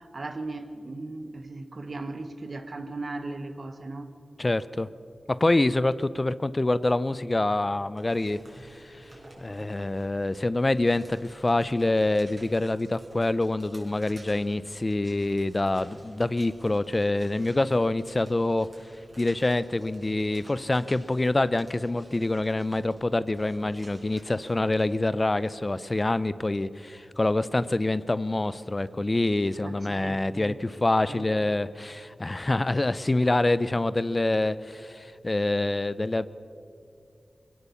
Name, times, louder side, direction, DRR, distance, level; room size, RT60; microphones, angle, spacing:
voice 1, 0.0-4.1 29.6-30.6 31.1-31.3, right 2 dB, 65° right, 9 dB, 1.5 m, -37 dB
voice 2, 4.4-4.9 5.3-9.0 9.4-18.7 19.2-36.3, left 2 dB, 35° left, 16 dB, 0.6 m, -26 dB
sound 1, 7.8-24.9, right 1 dB, 40° right, 5.4 m, -54 dB
22.0 x 17.0 x 7.0 m, 2.5 s
cardioid pair, 40°, 0 cm